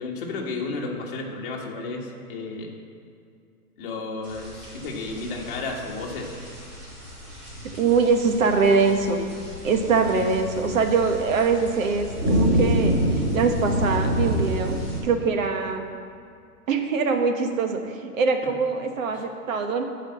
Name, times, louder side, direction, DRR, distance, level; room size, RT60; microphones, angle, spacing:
voice 1, 0.0-2.7 3.8-6.3 19.1-19.2, left 3 dB, 35° left, -1 dB, 1.5 m, -32 dB
sound 1, 4.2-15.0, equal, 20° right, 3.0 m, -28 dB
voice 2, 7.7-9.2 9.6-14.8 15.0-15.8 16.7-19.8, right 4 dB, 55° right, 5 dB, 1.3 m, -23 dB
12.0 x 5.0 x 7.5 m, 2.3 s
hypercardioid pair, 160°, 47 cm